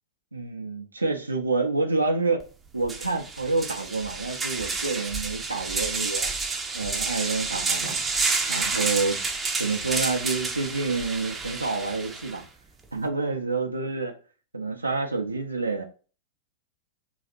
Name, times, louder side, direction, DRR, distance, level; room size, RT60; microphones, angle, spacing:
voice 1, 0.3-2.5 2.7-6.3 6.7-7.9 8.5-9.2 9.6-12.4 12.9-14.1 14.5-15.8, right 3 dB, 90° right, 0.7 m, -28 dB
sound 1, 2.4-2.5 2.8-12.4, right 4 dB, 15° right, 0.7 m, -30 dB
4.0 x 2.4 x 4.2 m
figure-of-eight pair, 95°, 0 cm